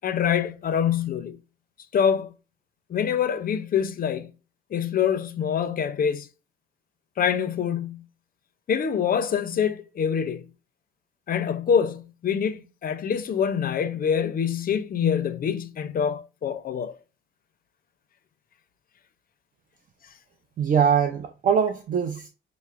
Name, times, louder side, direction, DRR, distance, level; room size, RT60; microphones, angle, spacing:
voice 1, 0.0-1.4 1.9-2.3 2.9-4.3 4.7-6.3 7.2-8.0 8.7-10.4 11.3-16.9, left 7 dB, 45° left, 0.5 m, -25 dB
voice 2, 20.6-22.3, right 7 dB, 45° right, 0.4 m, -22 dB
5.4 x 2.0 x 2.3 m
cardioid pair, 90°, 20 cm